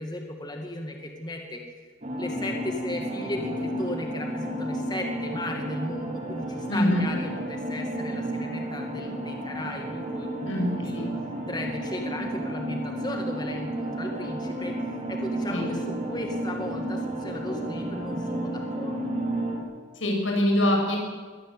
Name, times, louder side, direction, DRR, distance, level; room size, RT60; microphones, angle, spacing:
voice 1, 0.0-1.6 2.2-11.0 11.4-19.1, left 1 dB, 20° left, 2 dB, 2.2 m, -36 dB
sound 1, 2.0-19.6, right 1 dB, 35° right, 4.5 m, -32 dB
voice 2, 6.7-7.0 10.4-11.1 15.5-15.7 20.0-21.0, left 1 dB, 85° left, 1 dB, 7.2 m, -24 dB
23.0 x 18.0 x 8.2 m, 1.5 s
head